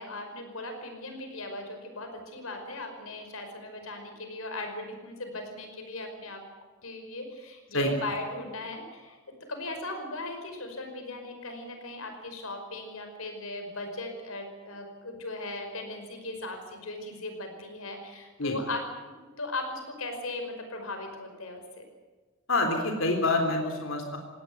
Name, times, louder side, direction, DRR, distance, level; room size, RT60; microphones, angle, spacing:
voice 1, 0.0-6.4 6.8-9.2 9.5-21.8, left 2 dB, 90° left, 5 dB, 5.4 m, -38 dB
voice 2, 22.5-24.2, left 2 dB, 65° left, 3 dB, 3.7 m, -26 dB
19.5 x 17.5 x 9.5 m, 1.3 s
head